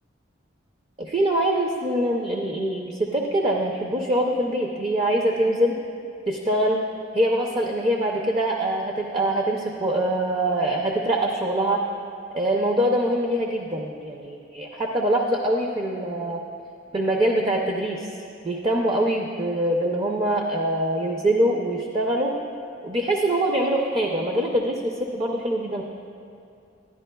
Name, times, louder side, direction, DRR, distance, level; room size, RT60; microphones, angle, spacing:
voice 1, 1.0-5.8 6.3-6.8 7.1-11.8 12.3-16.4 16.9-18.1 18.4-22.3 22.8-25.9, right 1 dB, 30° right, 0 dB, 0.5 m, -24 dB
11.0 x 10.5 x 2.3 m, 2.5 s
head